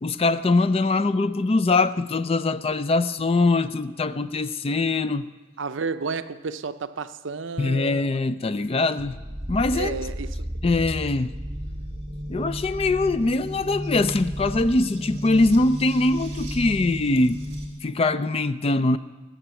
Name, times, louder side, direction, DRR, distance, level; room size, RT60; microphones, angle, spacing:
voice 1, 0.0-5.3 7.6-9.2 9.5-10.0 10.6-11.4 12.3-17.4 17.8-19.0, left 2 dB, 30° left, 0.4 m, -22 dB
voice 2, 5.6-8.2 9.7-10.5, right 4 dB, 70° right, 0.6 m, -32 dB
sound 1, 9.0-17.7, equal, 35° right, 2.6 m, -33 dB
20.0 x 7.3 x 7.0 m
head